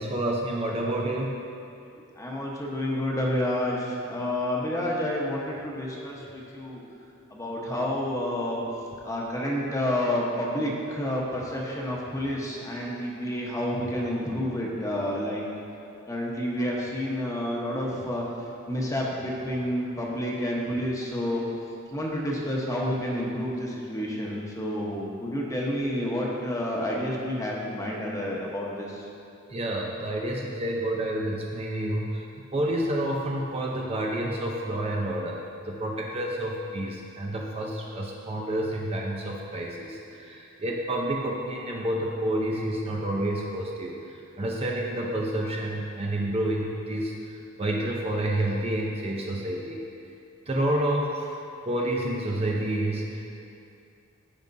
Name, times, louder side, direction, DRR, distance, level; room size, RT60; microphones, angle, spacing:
voice 1, 0.0-1.3 8.9-9.0 29.5-32.2 32.5-44.0 44.4-47.1 47.6-49.8 50.5-51.4 51.7-53.3, right 1 dB, 30° right, -1 dB, 0.6 m, -29 dB
voice 2, 2.2-6.8 7.3-8.6 9.0-15.4 16.1-18.2 18.7-21.4 21.9-29.0, left 1 dB, 15° left, -3 dB, 1.1 m, -29 dB
14.5 x 5.2 x 2.7 m, 2.6 s
head